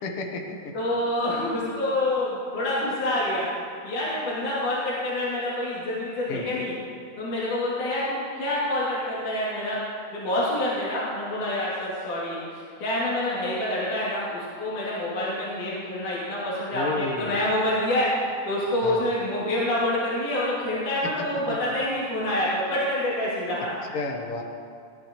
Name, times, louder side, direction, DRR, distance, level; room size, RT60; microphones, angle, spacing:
voice 1, 0.0-0.6 6.3-6.5 16.7-17.6 18.8-19.0 23.9-24.4, left 3 dB, 75° left, 1 dB, 1.3 m, -31 dB
voice 2, 0.7-3.5 3.8-6.8 7.2-9.8 10.1-23.8, left 1 dB, 55° left, -8 dB, 4.3 m, -27 dB
23.5 x 13.0 x 3.2 m, 2.3 s
omnidirectional pair, 4.5 m